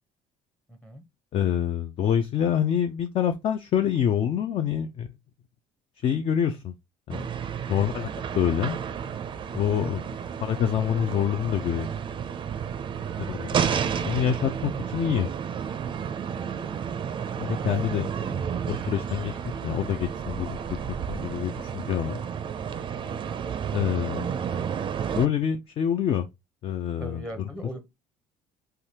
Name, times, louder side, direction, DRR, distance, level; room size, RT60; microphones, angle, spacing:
voice 1, 0.7-1.0 9.8-10.0 18.2-18.4 23.0-23.5 27.0-27.8, equal, 5° left, 0.6 m, -41 dB
voice 2, 1.3-5.1 6.0-6.7 7.1-7.2 7.7-8.1 8.3-8.8 9.5-10.0 10.4-11.9 13.3-13.5 14.0-15.3 17.4-18.1 18.7-19.4 19.6-22.2 23.7-24.4 25.2-26.3 26.6-27.2, left 9 dB, 45° left, 0.4 m, -26 dB
sound 1, 7.1-25.3, right 7 dB, 40° right, 0.4 m, -31 dB
3.4 x 2.3 x 2.8 m
supercardioid pair, 95°, 13 cm